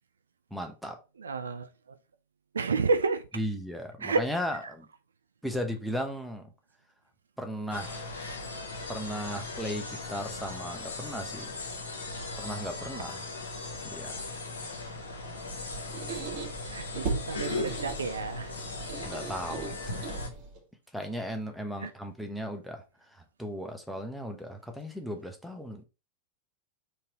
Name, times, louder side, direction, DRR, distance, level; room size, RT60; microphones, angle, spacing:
voice 1, 0.5-1.0 3.3-4.9 5.4-6.5 7.4-8.2 8.9-11.6 12.4-13.2 13.8-14.2 19.0-19.8 20.9-22.8 23.1-25.8, equal, ahead, 1.0 m, -36 dB
voice 2, 1.2-2.0 2.5-3.3 4.0-4.2 12.9-13.2 14.6-14.8 16.1-16.3 16.7-18.5 21.8-21.9, right 4 dB, 70° right, 0.4 m, -31 dB
sound 1, 7.7-20.3, left 3 dB, 75° left, 1.1 m, -38 dB
Squeak, 15.4-20.6, right 4 dB, 40° right, 1.7 m, -38 dB
4.3 x 3.3 x 3.7 m
figure-of-eight pair, 90°, 0 cm